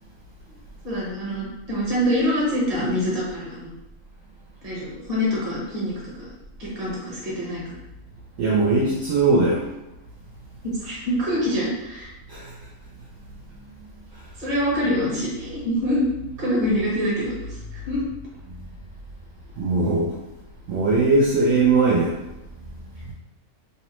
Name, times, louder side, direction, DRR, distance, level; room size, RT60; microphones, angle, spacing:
voice 1, 0.8-3.7 4.6-6.3 6.6-7.8 10.6-12.1 14.4-16.0 16.4-18.0, equal, 30° right, -5 dB, 0.9 m, -25 dB
voice 2, 8.4-9.6 12.3-12.5 14.1-14.2 19.6-20.1 20.7-22.2, right 3 dB, 70° right, -5 dB, 0.8 m, -20 dB
2.8 x 2.0 x 3.0 m, 0.97 s
omnidirectional pair, 1.6 m